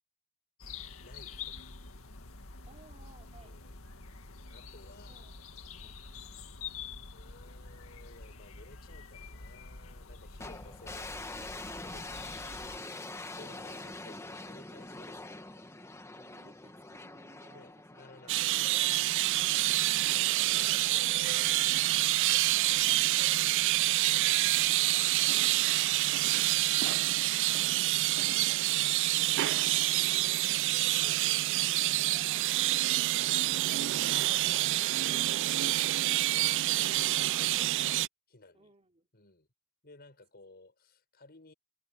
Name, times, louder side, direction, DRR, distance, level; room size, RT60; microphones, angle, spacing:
sound 1, 0.6-12.8, left 5 dB, 75° left, 2.0 m, -47 dB
voice 1, 1.0-1.8 3.4-3.8 4.5-5.3 7.1-11.2 11.7-15.7 16.4-16.5 17.5-19.0 19.4-22.8 26.1-26.4 28.2-28.5 31.0-32.2 33.6-33.9 36.4-37.8 38.3-38.7 39.1-39.5 39.8-41.5, left 2 dB, 45° left, 5.8 m, -56 dB
voice 2, 2.6-3.6 5.1-5.4 5.8-6.1 11.9-12.4 13.6-13.9 16.1-18.4 24.6-26.6 32.1-33.4 38.5-39.1, right 3 dB, 30° right, 3.1 m, -62 dB
sound 2, 10.4-21.6, left 2 dB, 15° left, 1.3 m, -45 dB
sound 3, 18.3-38.1, right 16 dB, 60° right, 0.3 m, -27 dB
head